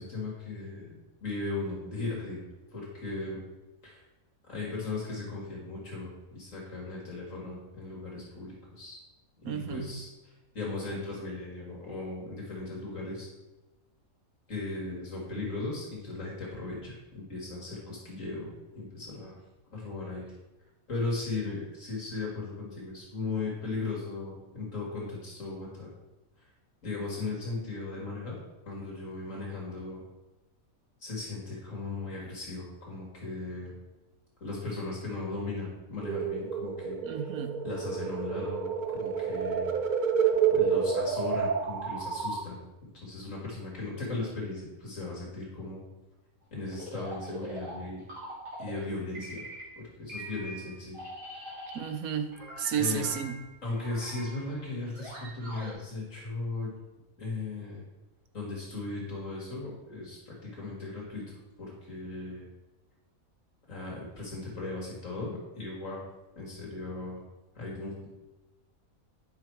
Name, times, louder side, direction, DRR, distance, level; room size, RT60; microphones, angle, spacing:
voice 1, 0.0-2.4 2.7-3.4 3.8-4.0 4.4-9.0 9.4-13.3 14.5-19.4 19.7-20.3 20.9-25.9 26.4-26.5 26.8-28.4 28.7-30.0 31.0-33.7 34.4-37.3 37.6-39.7 40.5-42.6 42.9-45.9 46.5-48.0 48.6-49.4 49.8-51.0 52.8-53.1 53.6-56.7 57.2-57.8 58.3-62.5 63.7-66.0 66.4-67.2 67.5-68.1, left 3 dB, 65° left, -4 dB, 2.4 m, -37 dB
voice 2, 9.4-9.9 37.0-37.6 51.7-53.4, right 8 dB, 80° right, 8 dB, 1.3 m, -32 dB
sound 1, 36.0-42.4, right 7 dB, 45° right, 0.6 m, -29 dB
sound 2, 46.7-48.9 49.1-49.8 50.1-52.0 52.3-55.7, equal, 60° right, 3.4 m, -43 dB
9.7 x 5.6 x 4.6 m, 1.1 s
omnidirectional pair, 1.5 m